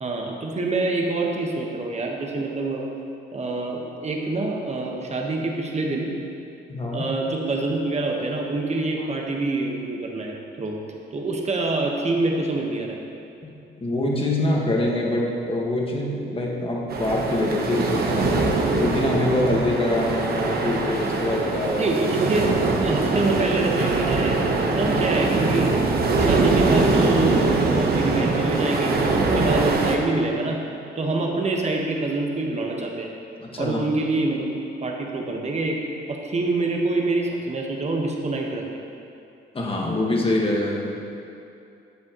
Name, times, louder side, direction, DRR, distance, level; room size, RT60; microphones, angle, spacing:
voice 1, 0.0-2.9 3.3-6.1 6.9-10.8 11.1-13.0 21.8-22.5 22.8-24.4 24.7-25.7 26.2-30.6 30.9-33.1 33.6-34.5 34.8-35.8 36.1-38.6, right 2 dB, 35° right, 0 dB, 1.3 m, -26 dB
voice 2, 6.7-7.1 9.0-9.1 13.4-13.5 13.8-18.5 18.8-21.9 33.4-33.8 39.5-40.9, left 1 dB, 25° left, -2 dB, 1.6 m, -24 dB
sound 1, 16.9-30.0, right 3 dB, 50° right, 1.1 m, -22 dB
11.5 x 7.6 x 3.0 m, 2.7 s
cardioid pair, 90°, 20 cm